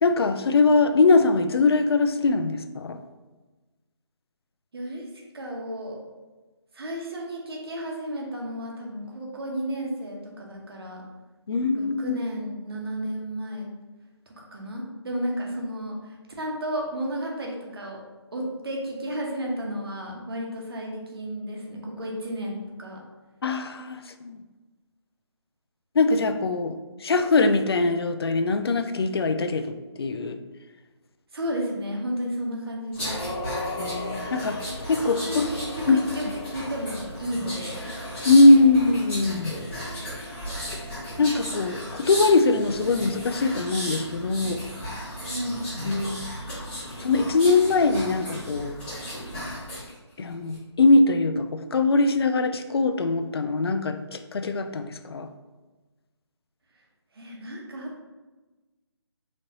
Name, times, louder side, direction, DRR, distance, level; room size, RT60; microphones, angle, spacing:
voice 1, 0.0-3.0 11.5-12.2 23.4-24.4 25.9-26.8 27.0-30.4 33.8-34.6 34.9-35.5 35.9-36.0 38.2-39.5 40.7-40.8 41.2-44.6 45.8-46.2 47.0-48.8 50.2-55.3, left 3 dB, 60° left, 9 dB, 0.4 m, -21 dB
voice 2, 4.7-5.1 5.3-6.0 6.7-11.0 11.7-13.7 14.3-18.0 18.3-23.0 31.3-33.2 35.2-37.9 45.3-45.6 57.1-57.9, equal, 55° right, -1 dB, 1.0 m, -33 dB
sound 1, 32.9-49.9 50.3-50.6, equal, 5° left, 0.9 m, -34 dB
4.0 x 3.1 x 2.8 m, 1.2 s
figure-of-eight pair, 165°, 15 cm